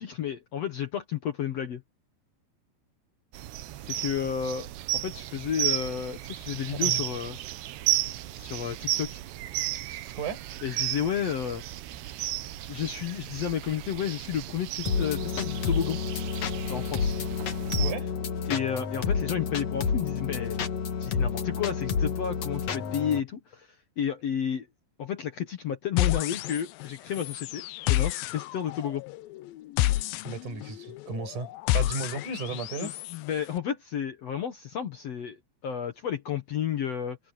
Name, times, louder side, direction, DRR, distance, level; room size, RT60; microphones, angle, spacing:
voice 1, 0.0-1.8 3.8-4.7 4.9-7.4 8.3-9.2 10.6-11.6 12.7-16.0 16.7-17.1 18.5-20.6 21.0-23.7 24.0-24.7 25.0-29.0 32.8-37.2, left 8 dB, 70° left, 1.5 m, -31 dB
sound 1, 3.3-17.9, right 14 dB, 80° right, 3.1 m, -34 dB
voice 2, 6.7-7.0 10.1-10.5 17.8-18.1 30.2-33.0, right 4 dB, 45° right, 7.3 m, -35 dB
sound 2, 14.9-23.2, left 6 dB, 50° left, 2.3 m, -29 dB
sound 3, 26.0-26.9 27.1-33.2, left 16 dB, 85° left, 2.1 m, -30 dB
omnidirectional pair, 4.9 m